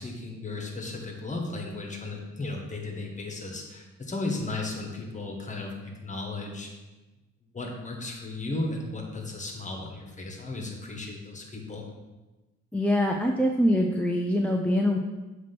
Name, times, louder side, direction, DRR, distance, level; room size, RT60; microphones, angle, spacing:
voice 1, 0.0-6.7 7.5-11.9, left 2 dB, 25° left, 1 dB, 1.5 m, -35 dB
voice 2, 12.7-15.0, equal, 5° left, 1 dB, 0.5 m, -24 dB
7.5 x 3.0 x 5.9 m, 1.1 s
cardioid pair, 90°, 30 cm